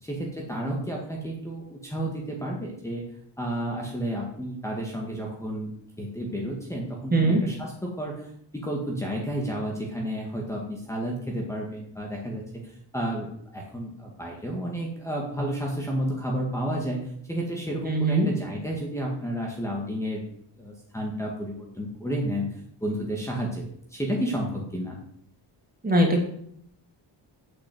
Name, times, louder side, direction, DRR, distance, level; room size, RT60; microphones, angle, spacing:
voice 1, 0.0-3.1 3.4-5.7 6.0-13.3 13.5-17.0 17.3-20.2 20.6-22.5 22.8-23.6 23.9-25.0, equal, 5° left, -2 dB, 2.0 m, -31 dB
voice 2, 17.9-18.3 25.8-26.2, right 2 dB, 20° right, 0 dB, 2.7 m, -21 dB
8.8 x 8.5 x 7.9 m, 0.68 s
wide cardioid pair, 175°, 44 cm